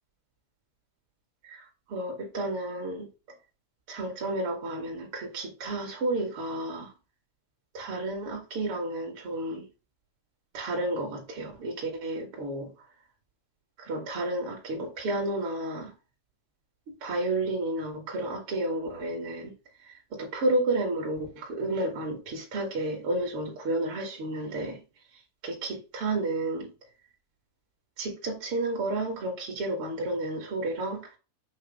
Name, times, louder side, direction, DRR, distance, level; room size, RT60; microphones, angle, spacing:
voice 1, 1.4-3.1 3.9-6.9 7.7-9.7 10.5-12.7 13.8-15.9 17.0-19.5 19.8-24.8 25.1-26.7 28.0-31.1, right 2 dB, 50° right, 1.6 m, -31 dB
8.6 x 3.0 x 5.4 m
omnidirectional pair, 5.6 m